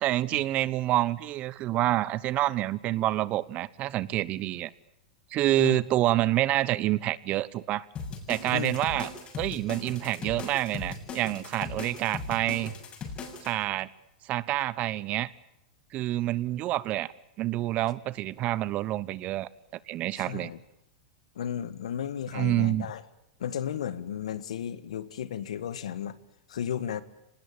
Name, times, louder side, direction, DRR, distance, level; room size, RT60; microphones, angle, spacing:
voice 1, 0.0-4.7 5.3-7.8 8.3-9.1 9.4-12.7 13.4-13.9 14.3-15.3 15.9-17.1 17.4-19.5 19.9-20.5 22.3-22.9, right 15 dB, 40° right, 20 dB, 1.1 m, -27 dB
sound 1, 8.0-13.5, left 4 dB, 30° left, 7.0 m, -38 dB
voice 2, 8.5-9.0 20.2-20.6 21.3-23.0 23.4-26.2 26.5-27.0, left 9 dB, 80° left, 15 dB, 1.6 m, -34 dB
25.5 x 20.0 x 8.8 m, 0.83 s
hypercardioid pair, 110°, 3 cm